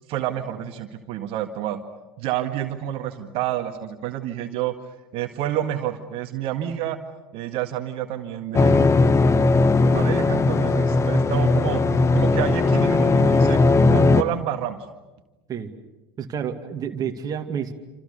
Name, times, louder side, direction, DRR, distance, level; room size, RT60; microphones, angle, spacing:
voice 1, 0.1-1.8 2.2-4.8 5.1-7.0 7.3-8.9 9.7-13.6 13.9-14.9, right 11 dB, 50° right, 6 dB, 1.8 m, -29 dB
sound 1, 8.5-14.2, left 3 dB, 20° left, 1.4 m, -18 dB
voice 2, 16.2-17.7, right 8 dB, 30° right, 3 dB, 2.3 m, -29 dB
28.0 x 27.5 x 6.8 m, 1.1 s
figure-of-eight pair, 80°, 12 cm